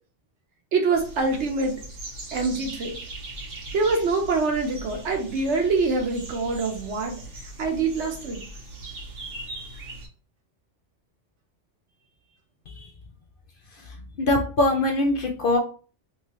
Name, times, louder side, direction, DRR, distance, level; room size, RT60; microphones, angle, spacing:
voice 1, 0.7-1.8 2.3-3.0 3.7-7.2 7.6-8.4, right 3 dB, 70° right, 3 dB, 1.1 m, -25 dB
sound 1, 0.9-10.1, right 2 dB, 90° right, 1.3 m, -40 dB
voice 2, 14.2-15.6, left 2 dB, 60° left, 2 dB, 0.6 m, -22 dB
3.1 x 3.0 x 2.9 m, 0.39 s
omnidirectional pair, 1.3 m